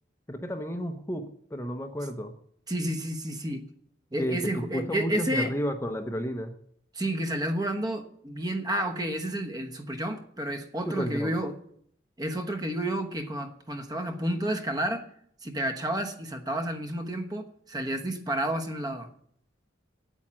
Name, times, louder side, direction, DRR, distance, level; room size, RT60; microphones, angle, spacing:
voice 1, 0.3-2.3 4.2-6.5 10.9-11.3, equal, 15° left, 5 dB, 0.8 m, -32 dB
voice 2, 2.7-3.6 4.1-5.5 6.9-11.5 12.2-15.0 15.4-19.1, right 1 dB, 20° right, 6 dB, 1.1 m, -30 dB
8.9 x 8.8 x 8.7 m, 0.66 s
head